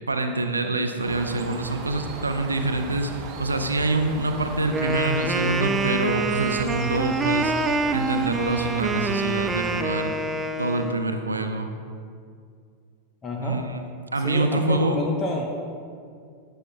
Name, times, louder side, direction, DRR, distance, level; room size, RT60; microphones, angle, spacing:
voice 1, 0.1-7.5 7.9-10.1 10.6-11.7 13.4-13.8 14.1-15.0, right 2 dB, 80° right, 6 dB, 0.6 m, -26 dB
Bird, 1.0-9.8, right 3 dB, 35° right, 1.0 m, -38 dB
Wind instrument woodwind instrument, 4.7-11.0, right 3 dB, 15° right, 0.4 m, -26 dB
voice 2, 13.2-13.6 14.2-15.5, left 1 dB, 25° left, 1 dB, 0.8 m, -28 dB
13.0 x 9.0 x 2.3 m, 2.3 s
figure-of-eight pair, 90°, 0 cm